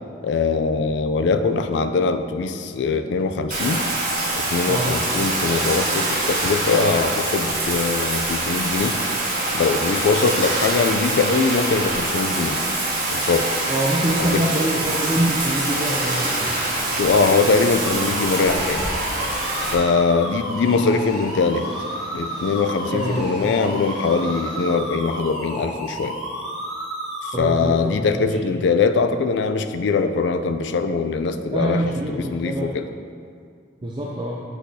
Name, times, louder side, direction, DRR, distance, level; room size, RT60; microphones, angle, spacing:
voice 1, 0.2-3.8 4.4-9.0 9.5-12.6 13.1-13.5 14.2-14.4 17.0-18.8 19.7-21.7 22.1-26.1 27.4-31.8 32.1-32.8, left 4 dB, 75° left, 8 dB, 0.4 m, -22 dB
Bathtub (filling or washing), 3.5-19.7, right 2 dB, 50° right, 1.2 m, -24 dB
voice 2, 13.7-16.6 22.9-23.3 27.3-28.4 31.5-32.8 33.8-34.4, right 1 dB, 25° right, -3 dB, 0.5 m, -25 dB
Engine, 16.0-24.7, equal, 65° right, 1.5 m, -41 dB
sound 1, 17.8-27.4, equal, ahead, 1.7 m, -32 dB
8.0 x 6.2 x 2.7 m, 2.2 s
head